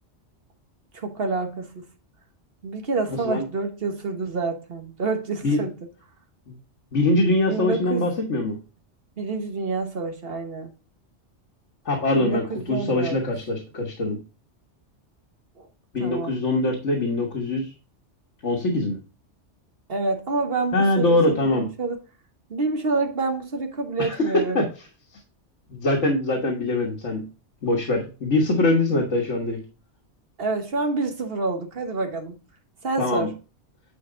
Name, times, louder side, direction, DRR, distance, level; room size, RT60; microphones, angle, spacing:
voice 1, 0.9-1.9 2.6-5.7 7.5-8.1 9.2-10.7 12.1-13.2 15.6-15.7 16.0-16.3 19.9-22.0 22.5-24.6 30.4-32.3 32.8-33.3, right 3 dB, 55° right, 1.6 m, -28 dB
voice 2, 6.9-8.6 11.9-14.2 15.9-17.7 18.4-19.0 20.7-21.7 24.0-24.6 25.7-27.2 27.6-29.6 33.0-33.3, left 2 dB, 85° left, 1.8 m, -23 dB
9.5 x 4.5 x 3.9 m
omnidirectional pair, 1.2 m